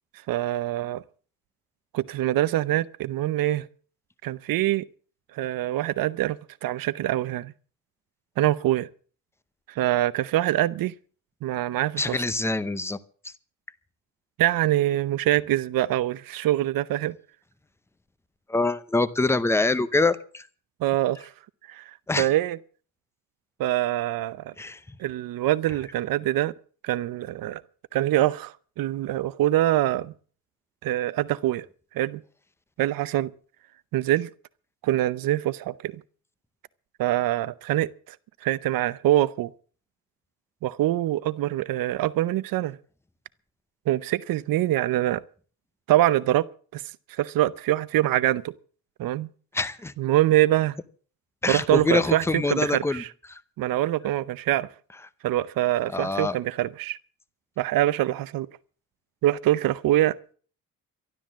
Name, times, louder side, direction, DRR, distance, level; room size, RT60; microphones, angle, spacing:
voice 1, 0.3-1.0 1.9-3.7 4.2-4.8 5.3-7.5 8.4-8.9 9.7-10.9 11.4-12.2 14.4-17.2 20.8-21.3 21.7-21.8 22.2-22.6 23.6-24.5 25.0-26.5 26.8-27.6 27.9-30.1 30.8-31.7 31.9-32.2 32.8-33.3 33.9-34.3 34.8-36.0 37.0-38.2 38.4-39.5 40.6-42.8 43.9-45.2 45.9-46.5 46.7-46.8 47.1-48.5 49.0-49.3 50.0-50.8 51.5-53.1 53.6-54.7 55.2-57.0 57.6-58.5 59.2-60.2, right 14 dB, 90° right, 0.8 m, -24 dB
voice 2, 12.0-13.0 13.2-13.3 18.5-20.5 22.1-22.3 24.6-25.0 49.5-49.9 51.4-53.4 55.9-56.3, left 3 dB, 10° left, 0.7 m, -25 dB
13.0 x 12.5 x 7.3 m
cardioid pair, 175°, 33 cm